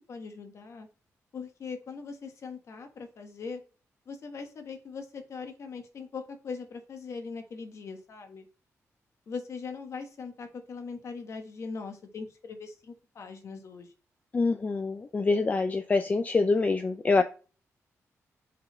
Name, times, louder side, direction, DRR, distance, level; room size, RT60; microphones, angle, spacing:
voice 1, 0.1-0.9 1.3-3.6 4.1-8.5 9.3-13.9 17.2-17.3, left 5 dB, 60° left, 6 dB, 1.3 m, -40 dB
voice 2, 14.3-17.2, left 3 dB, 30° left, 8 dB, 0.4 m, -25 dB
5.5 x 4.1 x 4.3 m, 0.36 s
cardioid pair, 115°, 6 cm